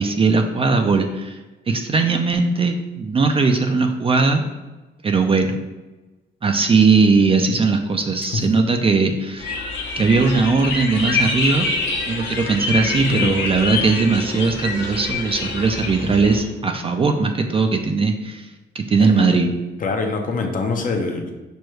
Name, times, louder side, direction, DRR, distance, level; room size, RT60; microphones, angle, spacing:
voice 1, 0.0-1.4 1.7-4.4 5.0-5.6 6.4-9.5 10.0-11.7 12.1-18.5 18.7-19.5, right 4 dB, 30° right, 5 dB, 0.4 m, -19 dB
sound 1, 9.4-16.4, left 3 dB, 65° left, 0.9 m, -26 dB
voice 2, 19.0-19.4 19.8-21.3, left 4 dB, 45° left, 4 dB, 0.7 m, -24 dB
6.1 x 2.2 x 3.2 m, 1.1 s
cardioid pair, 90°, 20 cm